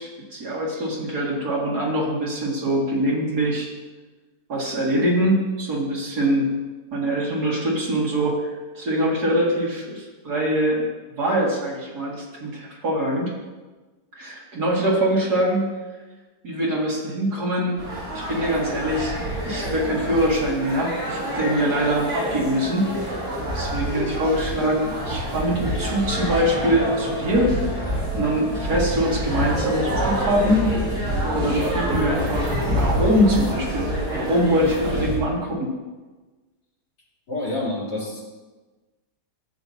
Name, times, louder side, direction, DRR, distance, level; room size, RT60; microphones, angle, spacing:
voice 1, 0.0-3.7 4.5-6.4 6.9-10.8 11.2-13.3 14.1-15.7 16.4-17.8 18.1-19.2 19.5-22.8 23.5-27.5 28.1-30.9 31.3-35.7, equal, 65° right, -4 dB, 2.7 m, -23 dB
sound 1, 17.8-35.2, equal, 50° right, 3.6 m, -27 dB
voice 2, 37.3-38.2, left 2 dB, 75° left, -11 dB, 4.1 m, -28 dB
13.0 x 7.8 x 2.8 m, 1.2 s
omnidirectional pair, 1.8 m